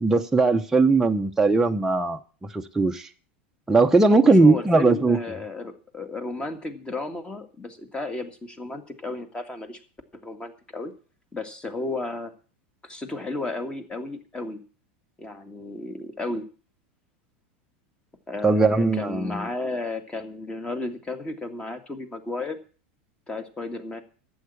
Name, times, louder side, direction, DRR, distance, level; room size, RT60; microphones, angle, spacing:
voice 1, 0.0-2.2 2.5-3.1 3.7-5.2 18.4-19.5, right 3 dB, 5° right, 0.8 m, -19 dB
voice 2, 4.0-9.8 10.1-10.9 11.3-12.3 12.8-14.6 15.2-16.5 18.3-22.6 23.3-24.0, left 2 dB, 15° left, 1.9 m, -33 dB
11.5 x 8.0 x 8.4 m
supercardioid pair, 130°, 6 cm